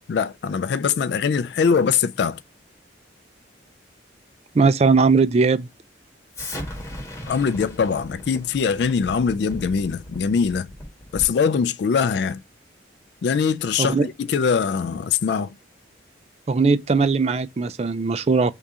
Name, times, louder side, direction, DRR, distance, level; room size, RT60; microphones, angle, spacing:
voice 1, 0.1-2.4 7.3-10.7 11.1-12.4 13.2-15.5, left 6 dB, 65° left, 0.3 m, -22 dB
voice 2, 4.5-5.7 13.8-14.1 16.5-18.5, right 4 dB, 35° right, 0.3 m, -19 dB
Explosion, 6.3-11.5, left 1 dB, 15° left, 1.3 m, -37 dB
3.6 x 2.8 x 4.6 m
head